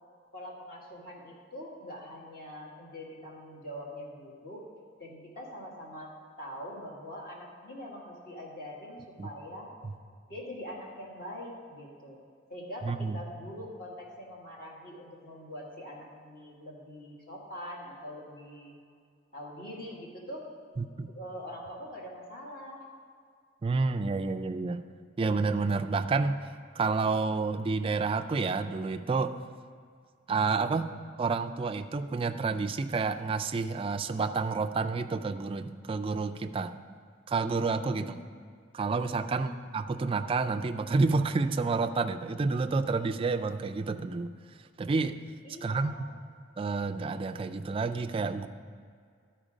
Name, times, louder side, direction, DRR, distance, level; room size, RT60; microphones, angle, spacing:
voice 1, 0.3-4.6 5.0-6.1 6.4-9.7 10.3-12.2 12.5-18.8 19.3-20.5 21.1-22.9 37.9-38.2 39.3-39.6 45.4-46.1, equal, 50° left, -3 dB, 1.7 m, -43 dB
voice 2, 12.8-13.2 20.8-21.1 23.6-24.8 25.2-26.4 26.8-29.4 30.3-30.9 31.2-36.7 37.3-38.2 38.7-44.3 44.8-45.2 45.6-45.9 46.6-48.5, right 4 dB, 30° right, 7 dB, 0.3 m, -29 dB
12.0 x 4.4 x 5.0 m, 2.1 s
head